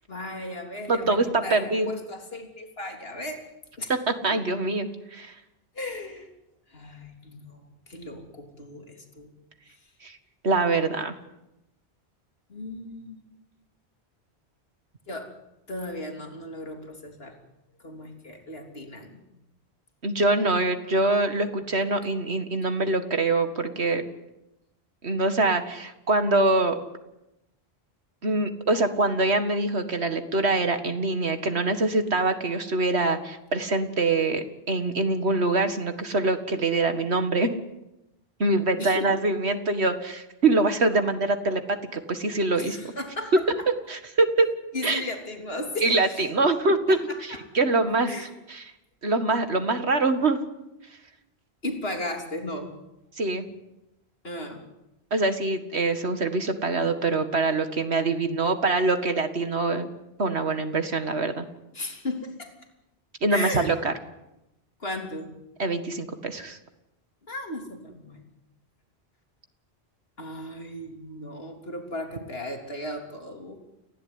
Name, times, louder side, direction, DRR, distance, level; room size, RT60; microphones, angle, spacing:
voice 1, 0.0-3.4 3.8-3.9 4.3-4.4 5.8-6.3 6.7-9.3 9.7-9.8 12.5-13.2 15.1-15.3 15.7-17.4 17.8-19.2 38.8-39.1 42.6-43.7 44.7-46.3 46.7-47.4 48.1-48.3 51.6-52.7 54.2-54.6 61.7-62.5 63.3-63.7 64.8-65.3 67.3-68.2 70.2-73.6, left 1 dB, 65° left, 3 dB, 3.7 m, -36 dB
voice 2, 0.9-1.9 4.1-5.3 10.0-10.2 10.4-11.2 20.0-24.0 25.0-26.8 28.2-37.5 38.4-42.8 43.9-44.5 44.8-45.0 45.8-48.6 49.0-50.4 53.2-53.5 55.1-59.9 60.2-61.5 63.2-63.9 65.6-66.6, right 2 dB, 80° right, 8 dB, 2.2 m, -24 dB
29.5 x 16.5 x 9.7 m, 0.92 s
omnidirectional pair, 1.1 m